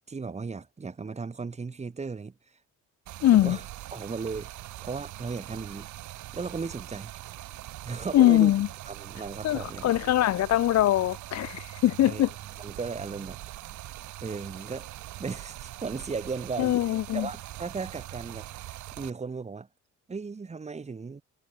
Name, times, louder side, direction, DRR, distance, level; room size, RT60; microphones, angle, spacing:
voice 1, 0.1-2.3 3.3-3.6 3.9-4.5 4.8-5.9 6.3-7.1 7.8-8.5 8.9-9.9 12.1-12.3 12.6-13.4 14.2-14.9 15.2-16.8 17.1-18.6 19.0-19.7 20.1-21.2, right 4 dB, 20° right, 1.1 m, -36 dB
Stream, 3.0-19.1, right 16 dB, 70° right, 0.6 m, -42 dB
voice 2, 3.2-3.6 8.1-8.7 9.4-12.3 16.6-17.3, left 13 dB, 60° left, 0.7 m, -22 dB
cardioid pair, 90°, 30 cm